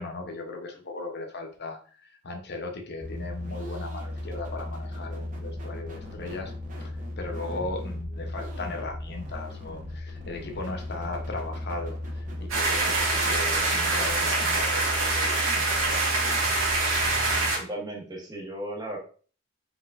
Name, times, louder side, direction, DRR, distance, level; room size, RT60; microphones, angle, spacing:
voice 1, 0.0-6.5 6.8-16.0 16.3-16.4, left 3 dB, 55° left, 4 dB, 0.8 m, -37 dB
sound 1, 3.0-17.5, left 1 dB, 40° right, 1.1 m, -36 dB
voice 2, 7.3-7.7 17.5-19.0, right 1 dB, 20° right, -1 dB, 1.2 m, -36 dB
sound 2, 12.5-17.6, right 3 dB, 90° right, 1.7 m, -25 dB
4.8 x 4.0 x 2.5 m, 0.41 s
head